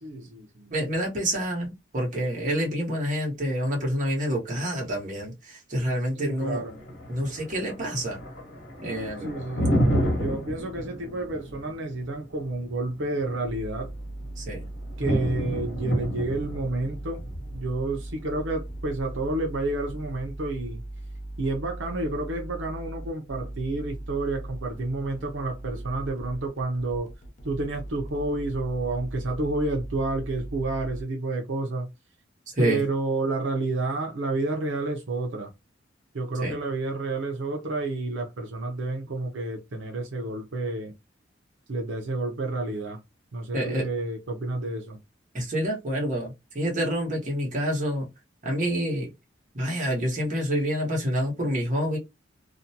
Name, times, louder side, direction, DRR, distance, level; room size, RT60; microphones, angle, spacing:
voice 1, 0.0-0.7 6.2-6.8 9.2-13.9 15.0-17.3 17.5-20.8 21.4-27.1 27.4-31.9 32.6-35.5 36.1-40.9 41.7-43.0 43.3-45.0, right 2 dB, 80° right, 0.6 m, -30 dB
voice 2, 0.7-6.6 7.1-8.2 8.8-9.3 14.4-14.6 32.5-32.8 36.4-36.5 43.5-43.9 45.3-48.1 48.4-49.1 49.5-52.0, equal, 40° right, 1.1 m, -27 dB
Thunder, 6.2-20.2, equal, 65° left, 1.1 m, -31 dB
sound 1, 13.4-31.0, right 1 dB, 40° left, 0.5 m, -39 dB
2.5 x 2.1 x 2.7 m
head